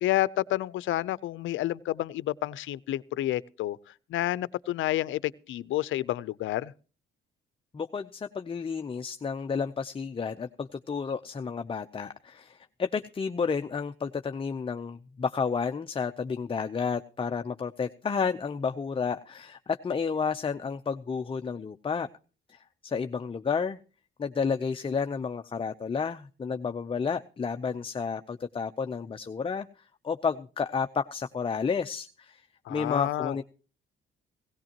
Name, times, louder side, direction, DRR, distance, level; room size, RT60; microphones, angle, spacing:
voice 1, 0.0-3.8 4.1-6.7 32.7-33.4, left 15 dB, 80° left, 0.6 m, -29 dB
voice 2, 7.7-22.1 22.5-23.8 24.2-29.7 30.0-32.4 32.7-33.4, left 5 dB, 25° left, 0.7 m, -31 dB
17.5 x 16.5 x 3.0 m
cardioid pair, 90°, 20 cm